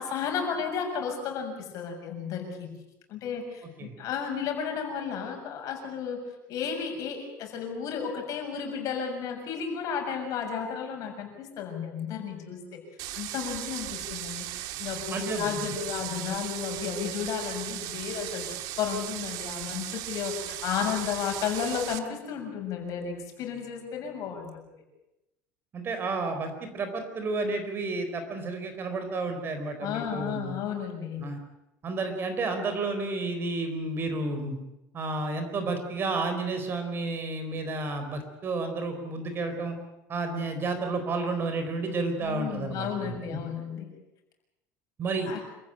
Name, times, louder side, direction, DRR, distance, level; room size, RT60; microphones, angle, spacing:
voice 1, 0.0-2.8 3.1-6.2 6.5-12.8 13.2-14.5 14.8-24.6 29.8-31.3 42.2-43.9 45.3-45.4, left 7 dB, 50° left, 3 dB, 7.1 m, -33 dB
sound 1, 13.0-22.0, right 14 dB, 65° right, 1.8 m, -37 dB
voice 2, 15.1-15.7 25.7-30.5 31.2-31.4 31.8-34.6 34.9-39.8 40.1-43.4 45.0-45.3, right 3 dB, 30° right, 7 dB, 4.2 m, -31 dB
27.5 x 15.0 x 8.9 m, 0.94 s
cardioid pair, 140°, 7 cm